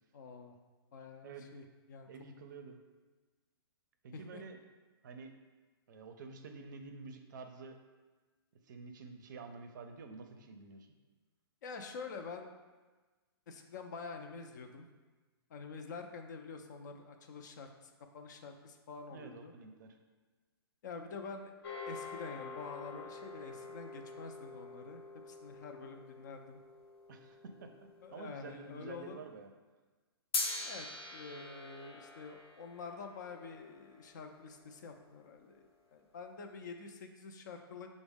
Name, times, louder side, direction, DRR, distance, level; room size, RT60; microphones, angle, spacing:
voice 1, 0.1-0.6 0.9-2.1 4.1-4.4 11.6-12.5 13.5-14.9 15.5-19.5 20.8-21.5 21.9-26.6 28.0-29.2 30.6-37.9, left 4 dB, 45° left, 5 dB, 0.4 m, -47 dB
voice 2, 2.1-2.8 4.0-4.6 5.0-5.3 5.9-7.8 8.7-10.9 19.1-20.0 27.1-27.7 28.1-29.5, right 4 dB, 50° right, 6 dB, 0.5 m, -49 dB
sound 1, 21.6-28.1 30.3-34.8, left 3 dB, 70° left, 0.8 m, -44 dB
6.0 x 2.0 x 3.4 m, 1.3 s
hypercardioid pair, 155°, 13 cm